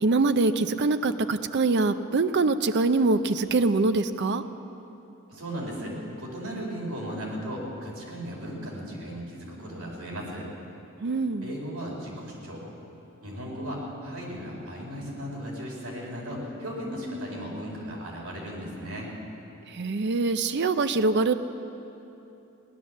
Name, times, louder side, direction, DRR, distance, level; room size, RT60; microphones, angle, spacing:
voice 1, 0.0-4.4 11.0-11.5 19.7-21.3, right 3 dB, 55° right, 11 dB, 0.5 m, -24 dB
voice 2, 5.3-10.5 11.4-12.6 13.2-19.1, equal, 85° right, -3 dB, 4.1 m, -36 dB
17.5 x 11.0 x 7.2 m, 2.9 s
head